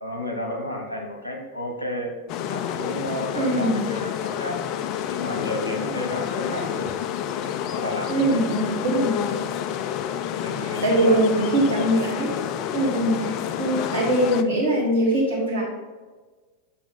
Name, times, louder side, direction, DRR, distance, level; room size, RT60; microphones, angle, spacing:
voice 1, 0.0-2.1 2.5-4.8 5.1-7.0 7.7-8.4 10.4-11.2, left 1 dB, 80° left, 2 dB, 1.1 m, -31 dB
sound 1, 2.3-14.4, left 9 dB, 40° left, 0.4 m, -29 dB
voice 2, 3.4-3.8 8.1-9.1 10.6-12.4 12.7-15.6, right 1 dB, 65° right, -5 dB, 1.8 m, -22 dB
7.1 x 5.9 x 3.7 m, 1.3 s
figure-of-eight pair, 90°, 0 cm